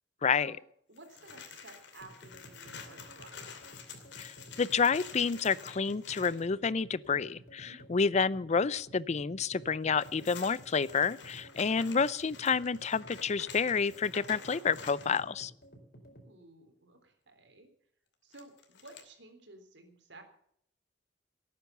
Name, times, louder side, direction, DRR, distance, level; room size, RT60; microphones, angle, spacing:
voice 1, 0.2-0.5 4.2-15.5, left 5 dB, 40° left, 20 dB, 0.5 m, -29 dB
voice 2, 0.9-3.4 7.7-7.8 16.0-17.7 18.2-20.2, right 2 dB, 80° right, 6 dB, 3.6 m, -54 dB
sound 1, 1.0-6.5 9.7-15.2 18.3-19.0, left 6 dB, 85° left, 2.7 m, -49 dB
sound 2, 2.0-16.3, right 1 dB, 60° left, 4.6 m, -53 dB
17.5 x 9.5 x 6.8 m, 0.68 s
head